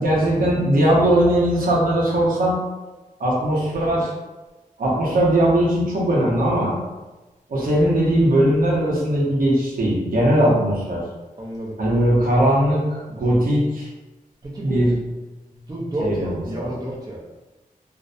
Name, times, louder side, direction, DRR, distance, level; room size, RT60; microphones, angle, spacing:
voice 1, 0.0-2.6 3.2-4.1 4.8-6.8 7.5-11.0 11.8-13.9 14.6-15.0 16.0-16.7, right 1 dB, 80° right, -4 dB, 0.7 m, -19 dB
voice 2, 11.4-11.8 14.4-14.9 15.5-17.2, right 1 dB, 25° right, -4 dB, 0.5 m, -30 dB
2.5 x 2.0 x 2.5 m, 1.1 s
wide cardioid pair, 150°, 15 cm